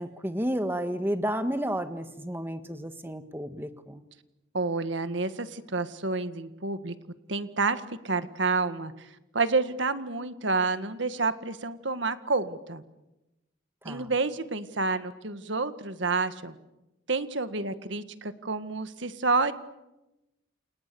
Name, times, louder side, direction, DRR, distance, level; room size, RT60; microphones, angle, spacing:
voice 1, 0.0-4.0 13.8-14.1, equal, 10° right, 9 dB, 1.6 m, -31 dB
voice 2, 4.5-6.9 7.3-12.8 13.9-16.5 17.1-19.5, right 3 dB, 65° right, 11 dB, 1.8 m, -29 dB
29.5 x 28.5 x 7.0 m, 0.97 s
head